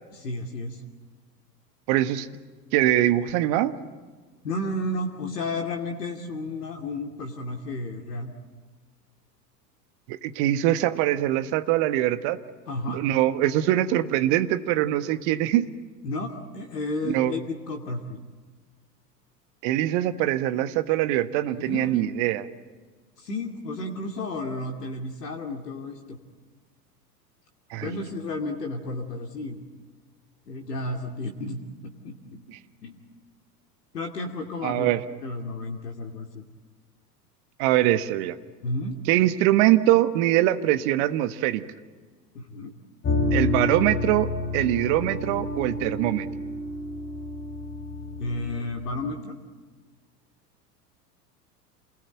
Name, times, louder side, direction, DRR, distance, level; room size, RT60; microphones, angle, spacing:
voice 1, 0.1-0.8 4.4-8.3 12.7-13.0 16.0-18.2 21.5-22.1 23.2-26.2 27.8-29.6 30.5-32.4 32.8-33.0 33.9-34.9 35.2-36.4 38.6-39.0 42.3-42.7 48.2-49.4, left 2 dB, 70° left, 3 dB, 2.6 m, -32 dB
voice 2, 1.9-2.3 2.7-3.7 10.1-12.4 12.9-15.7 17.0-17.3 19.6-22.4 27.7-28.0 34.6-35.0 37.6-38.4 39.1-41.6 43.3-46.3, right 14 dB, 45° right, 12 dB, 1.5 m, -23 dB
sound 1, 43.0-48.6, left 2 dB, 25° left, 5.1 m, -29 dB
28.5 x 21.0 x 9.0 m, 1.4 s
figure-of-eight pair, 85°, 49 cm